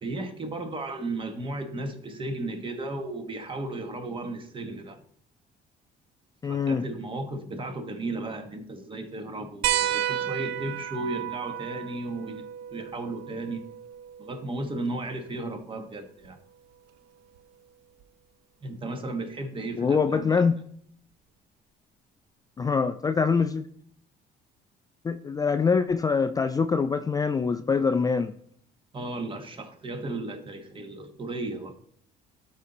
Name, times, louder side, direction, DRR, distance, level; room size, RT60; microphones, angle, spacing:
voice 1, 0.0-5.0 6.4-12.4 12.7-13.6 14.2-16.4 18.6-20.4 28.9-31.7, right 2 dB, 30° right, 7 dB, 1.1 m, -35 dB
voice 2, 6.4-6.8 19.8-20.6 22.6-23.6 25.0-28.3, left 5 dB, 20° left, 9 dB, 0.3 m, -24 dB
sound 1, 9.6-14.7 16.2-16.3 18.0-18.1, right 11 dB, 90° right, 0.4 m, -32 dB
12.0 x 4.1 x 3.8 m, 0.62 s
cardioid pair, 110°, 17 cm